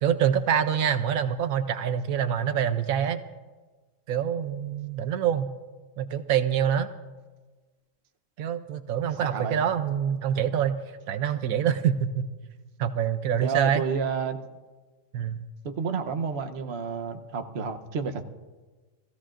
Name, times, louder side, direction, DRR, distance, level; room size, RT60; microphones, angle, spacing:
voice 1, 0.0-3.2 4.1-5.5 6.0-6.9 8.4-10.8 11.1-12.3 12.8-13.8 15.1-15.4, right 9 dB, 85° right, 10 dB, 1.1 m, -25 dB
voice 2, 9.2-9.7 13.4-14.4 15.6-18.2, right 6 dB, 55° right, 6 dB, 1.1 m, -30 dB
30.0 x 16.0 x 2.5 m, 1.3 s
omnidirectional pair, 1.4 m